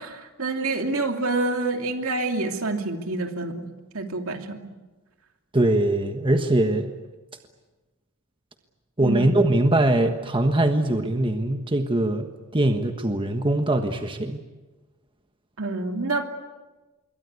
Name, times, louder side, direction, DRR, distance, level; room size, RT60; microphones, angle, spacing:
voice 1, 0.0-3.7 3.9-4.7 9.0-9.4 15.6-16.2, right 2 dB, 70° right, 4 dB, 2.8 m, -27 dB
voice 2, 5.5-6.9 9.0-14.4, right 1 dB, 25° right, 6 dB, 1.4 m, -22 dB
26.5 x 23.0 x 8.3 m, 1.2 s
head